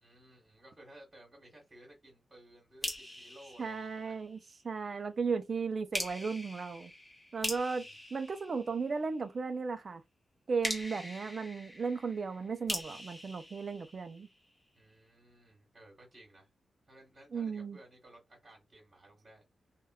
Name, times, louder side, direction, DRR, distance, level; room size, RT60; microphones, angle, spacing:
voice 1, 0.0-4.2 7.3-7.8 14.7-16.5 16.9-19.4, right 1 dB, 25° right, 1.2 m, -57 dB
sound 1, 2.8-4.5 5.9-9.3 10.6-14.5, left 1 dB, 10° left, 0.8 m, -42 dB
voice 2, 3.6-4.4 4.6-6.9 7.3-10.0 10.5-14.3 17.3-17.8, right 5 dB, 40° right, 0.3 m, -35 dB
3.4 x 2.1 x 2.2 m
wide cardioid pair, 170°, 0 cm